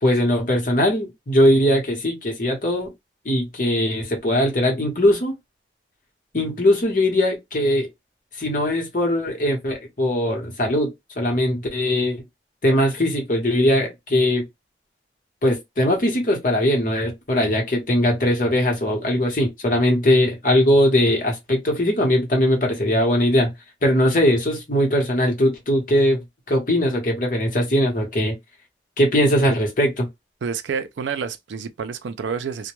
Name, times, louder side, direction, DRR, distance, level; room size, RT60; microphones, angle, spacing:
voice 1, 0.0-2.9 3.2-5.3 6.3-7.9 8.4-12.2 12.6-14.5 15.4-23.5 23.8-28.4 29.0-30.1, left 1 dB, 50° left, 1.0 m, -20 dB
voice 2, 30.4-32.7, right 6 dB, 85° right, 0.4 m, -29 dB
2.2 x 2.1 x 3.0 m
head